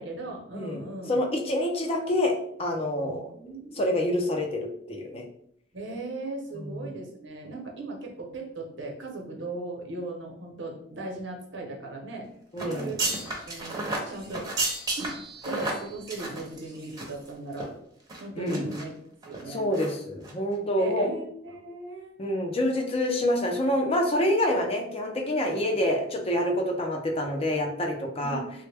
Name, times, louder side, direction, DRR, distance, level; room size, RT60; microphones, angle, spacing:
voice 1, 0.0-1.2 3.0-3.9 5.7-12.3 12.6-13.8 14.1-14.5 15.0-15.2 15.4-17.7 18.2-18.9 19.2-19.6 20.8-22.1 28.2-28.5, right 2 dB, 90° right, 1 dB, 0.8 m, -38 dB
voice 2, 1.1-2.3 2.6-3.2 3.8-5.2 6.5-6.8 12.5-12.9 18.4-18.6 19.5-21.1 22.2-28.4, left 1 dB, 35° left, 2 dB, 0.5 m, -27 dB
sound 1, 12.6-17.3 17.5-17.6 18.1-18.8 19.2-19.4 19.7-19.9 20.2-20.3, right 2 dB, 20° right, 0.7 m, -32 dB
3.3 x 2.1 x 3.3 m, 0.69 s
head